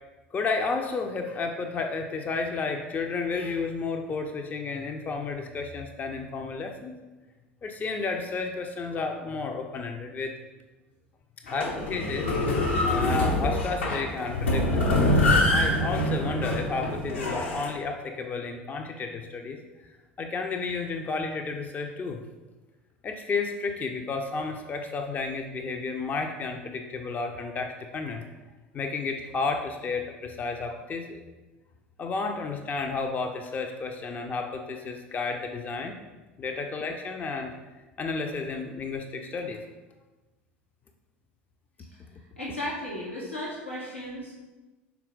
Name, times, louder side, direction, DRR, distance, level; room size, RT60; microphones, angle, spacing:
voice 1, 0.3-6.9 7.6-10.3 11.5-12.3 12.8-14.8 15.5-19.6 20.2-22.2 23.0-28.2 28.7-31.2 32.0-35.9 36.4-37.5 38.0-39.6, left 4 dB, 25° left, 4 dB, 0.5 m, -32 dB
sound 1, 11.5-17.7, left 1 dB, 70° left, 1.0 m, -25 dB
voice 2, 42.4-44.3, left 1 dB, 90° left, -6 dB, 1.2 m, -35 dB
5.8 x 4.3 x 3.7 m, 1.2 s
figure-of-eight pair, 70°, 7 cm